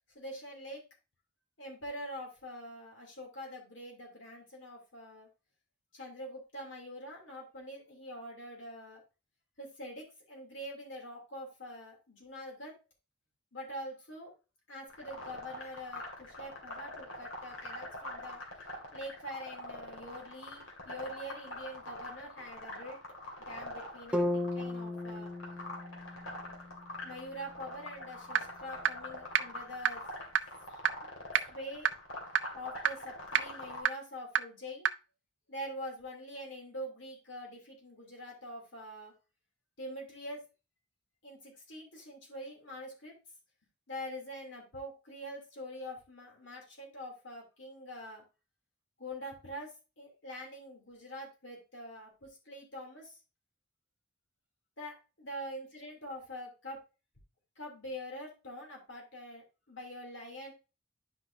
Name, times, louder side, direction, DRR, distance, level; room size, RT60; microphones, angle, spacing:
voice 1, 0.1-0.8 1.6-5.3 5.9-9.0 9.6-12.7 13.5-14.3 14.7-18.4 18.7-23.0 23.4-25.3 27.0-30.0 30.7-30.8 31.4-31.9 32.5-34.9 35.5-39.1 39.8-40.4 41.2-43.1 43.9-48.2 49.0-53.1 54.8-56.8 57.6-60.5, equal, 65° left, 0 dB, 3.0 m, -44 dB
sound 1, 14.9-33.8, left 1 dB, 90° left, 2.4 m, -44 dB
sound 2, 24.1-28.2, left 1 dB, 5° right, 0.7 m, -37 dB
sound 3, 28.4-28.5 28.8-28.9 29.4-29.5 29.9-30.0 30.4-30.5 30.9-31.0 31.3-31.4 31.9-32.0 32.4-32.5 32.9-33.0 33.3-33.4 33.9-34.0 34.4-34.5 34.9-35.0, right 9 dB, 70° right, 0.5 m, -25 dB
9.9 x 5.6 x 2.7 m, 0.30 s
head